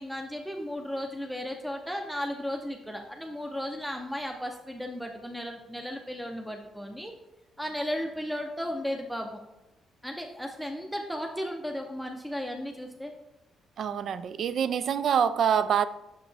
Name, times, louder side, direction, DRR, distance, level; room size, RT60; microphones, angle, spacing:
voice 1, 0.0-7.1 7.6-9.4 10.0-13.1, equal, ahead, 2 dB, 0.6 m, -35 dB
voice 2, 13.8-15.9, right 8 dB, 65° right, 14 dB, 0.3 m, -25 dB
6.2 x 4.9 x 3.4 m, 0.94 s
cardioid pair, 90°, 0 cm